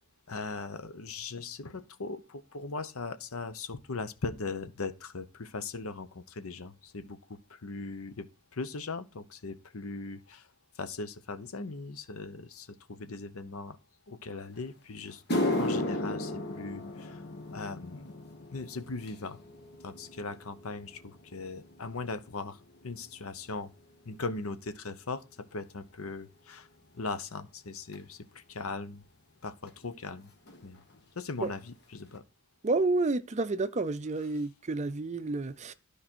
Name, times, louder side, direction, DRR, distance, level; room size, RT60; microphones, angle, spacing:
voice 1, 0.3-10.5 10.8-13.8 14.1-17.2 17.5-18.1 18.5-19.4 19.8-23.7 24.0-25.2 25.5-26.7 26.9-29.0 29.4-30.3 30.6-30.8 31.2-32.2, left 3 dB, 70° left, 0.8 m, -39 dB
sound 1, 14.6-14.7 15.1-23.6 23.9-24.3 25.1-25.2 27.9-28.0 29.7-29.8 29.9-30.2 30.5-31.0 31.4-31.5 32.0-32.1, left 1 dB, 50° left, 1.6 m, -36 dB
voice 2, 32.6-35.7, right 3 dB, 30° right, 0.5 m, -30 dB
12.5 x 5.1 x 4.4 m
head